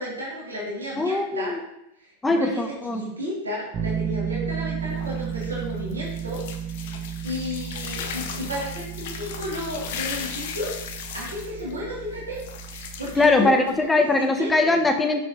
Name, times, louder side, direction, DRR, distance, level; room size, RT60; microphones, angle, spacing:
voice 1, 0.0-1.6 2.0-6.7 7.2-12.4 12.7-13.6 14.2-14.8, left 1 dB, 75° right, -6 dB, 2.6 m, -33 dB
voice 2, 1.0-1.6 2.2-3.0 13.2-15.2, left 2 dB, 10° left, 6 dB, 0.8 m, -21 dB
Bass guitar, 3.7-13.6, right 8 dB, 30° right, 1.0 m, -33 dB
sound 1, 4.8-13.9, left 7 dB, 55° left, 0.7 m, -37 dB
7.2 x 6.3 x 3.0 m, 0.85 s
figure-of-eight pair, 90°, 0 cm